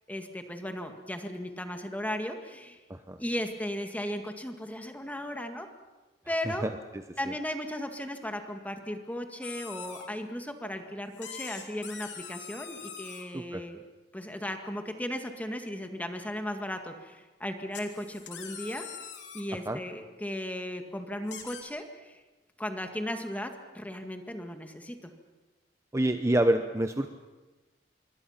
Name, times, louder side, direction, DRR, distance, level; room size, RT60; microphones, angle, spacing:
voice 1, 0.1-2.8 3.2-5.7 6.3-6.6 7.2-13.8 14.1-18.9 19.3-22.2 22.6-25.1, left 1 dB, 10° left, 5 dB, 2.0 m, -36 dB
voice 2, 6.3-7.3 13.3-13.6 19.7-19.8 25.9-27.1, right 1 dB, 15° right, 7 dB, 0.9 m, -28 dB
sound 1, 9.4-10.1 11.1-13.2 17.7-19.4 21.3-21.6, left 7 dB, 80° left, 3.2 m, -43 dB
26.0 x 23.0 x 5.9 m, 1.2 s
head